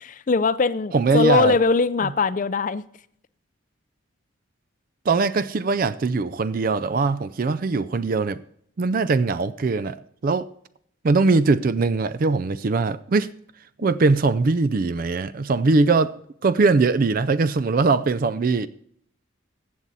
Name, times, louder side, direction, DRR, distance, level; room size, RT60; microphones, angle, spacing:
voice 1, 0.0-2.8, left 4 dB, 40° left, 0.4 m, -21 dB
voice 2, 0.9-1.6 5.1-8.4 8.8-10.0 10.2-10.5 11.0-13.3 13.8-16.1 16.4-18.7, right 3 dB, 45° right, 0.4 m, -21 dB
14.5 x 8.0 x 4.1 m
head